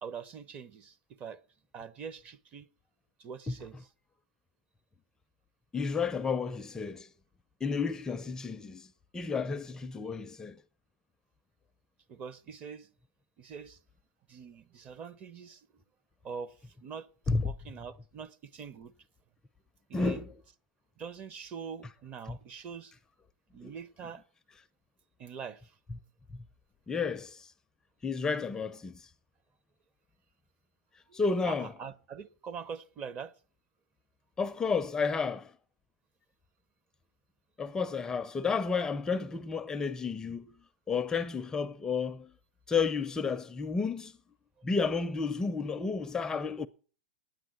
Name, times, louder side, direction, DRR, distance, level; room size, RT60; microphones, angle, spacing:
voice 1, 0.0-1.4 1.7-2.7 3.2-3.9 12.1-12.9 13.4-13.8 14.3-15.7 16.2-17.1 17.4-18.9 19.9-20.2 21.0-22.9 23.5-24.2 25.2-25.7 31.1-33.3, right 6 dB, 30° right, 0.9 m, -44 dB
voice 2, 5.7-7.1 7.6-10.6 17.3-17.5 19.9-20.4 22.3-22.4 23.6-23.8 25.9-26.0 26.3-26.4 26.9-27.5 28.0-29.1 31.1-31.7 34.4-35.5 37.6-40.5 40.9-42.3 42.7-44.1 44.6-46.7, left 5 dB, 15° left, 0.5 m, -31 dB
9.2 x 9.2 x 7.8 m
hypercardioid pair, 130°, 5 cm